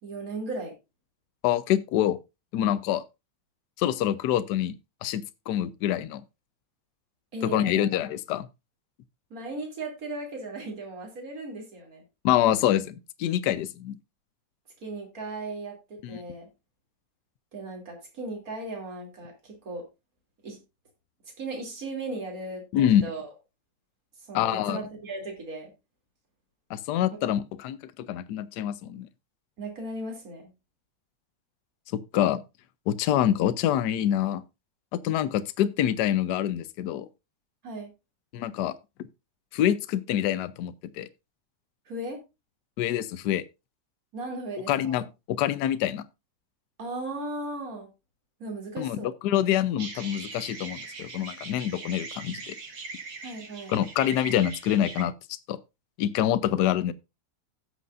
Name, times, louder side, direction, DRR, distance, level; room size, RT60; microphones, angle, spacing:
voice 1, 0.0-0.7 7.3-7.9 9.3-12.0 14.8-16.5 17.5-19.8 20.4-20.6 21.4-23.3 24.3-25.7 27.2-27.3 29.6-30.4 37.6-37.9 41.9-42.2 44.1-45.0 46.8-47.9 48.4-49.1 53.2-53.8, right 2 dB, 50° right, 3.3 m, -36 dB
voice 2, 1.4-2.2 2.5-3.0 3.8-4.7 5.0-6.2 7.4-8.5 12.2-13.9 16.0-16.2 22.7-23.1 24.3-24.8 26.7-27.8 28.1-29.1 31.9-32.4 32.9-34.4 34.9-37.1 38.3-38.7 39.5-41.1 42.8-43.4 44.7-46.0 48.8-52.5 53.7-55.1 55.5-55.6 56.0-56.9, left 11 dB, 70° left, 1.2 m, -26 dB
sound 1, 49.8-55.0, right 4 dB, 65° right, 2.3 m, -41 dB
16.5 x 6.7 x 2.5 m
omnidirectional pair, 2.0 m